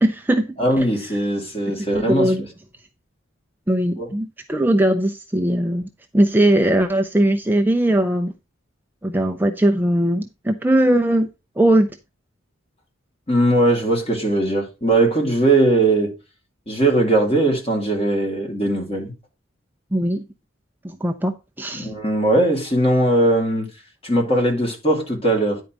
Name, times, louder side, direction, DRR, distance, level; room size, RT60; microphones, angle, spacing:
voice 1, 0.0-0.9 1.9-2.4 3.7-5.8 6.1-8.3 9.0-11.3 11.6-11.9 19.9-20.2 20.8-21.9, right 1 dB, 10° right, 0.5 m, -19 dB
voice 2, 0.6-2.3 4.0-4.1 13.3-16.1 16.7-19.1 21.7-23.7 24.0-25.6, right 1 dB, 30° left, 2.7 m, -19 dB
9.9 x 4.6 x 5.1 m
head